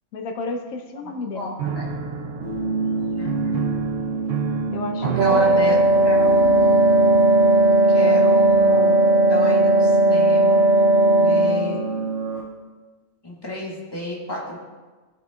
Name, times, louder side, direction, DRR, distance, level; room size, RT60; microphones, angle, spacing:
voice 1, 0.1-1.5 4.7-5.6, left 3 dB, 85° left, 5 dB, 1.2 m, -31 dB
voice 2, 1.0-1.9 3.2-3.7 5.0-5.8 6.0-6.6 7.9-9.0 9.3-10.6 11.2-11.8 13.2-14.6, left 1 dB, 20° left, -4 dB, 1.6 m, -32 dB
Piano, 1.6-7.5, right 5 dB, 70° right, 1.0 m, -31 dB
sound 1, 2.4-12.4, right 4 dB, 45° right, 2.1 m, -26 dB
Wind instrument woodwind instrument, 5.2-11.9, right 1 dB, 90° right, 1.4 m, -17 dB
16.0 x 6.0 x 2.3 m, 1.3 s
omnidirectional pair, 1.4 m